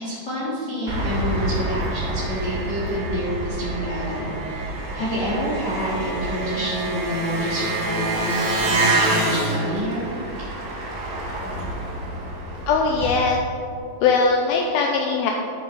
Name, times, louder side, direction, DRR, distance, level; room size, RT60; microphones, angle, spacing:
voice 1, 0.0-10.1, equal, 35° left, -9 dB, 1.7 m, -28 dB
Engine, 0.9-13.1, right 2 dB, 85° right, 3.8 m, -27 dB
voice 2, 12.7-13.4 14.0-15.3, left 4 dB, 85° left, 1 dB, 2.2 m, -20 dB
12.5 x 7.7 x 4.1 m, 2.5 s
omnidirectional pair, 5.0 m